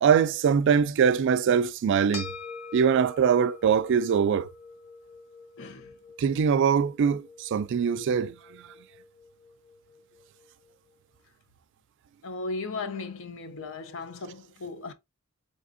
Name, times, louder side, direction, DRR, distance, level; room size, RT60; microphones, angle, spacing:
voice 1, 0.0-2.3 2.7-4.5 6.2-8.7, right 7 dB, 60° right, 0.3 m, -23 dB
sound 1, 2.1-10.7, left 4 dB, 85° left, 1.2 m, -45 dB
voice 2, 5.6-5.9 12.2-14.9, left 3 dB, 65° left, 0.6 m, -36 dB
4.0 x 3.5 x 2.5 m
head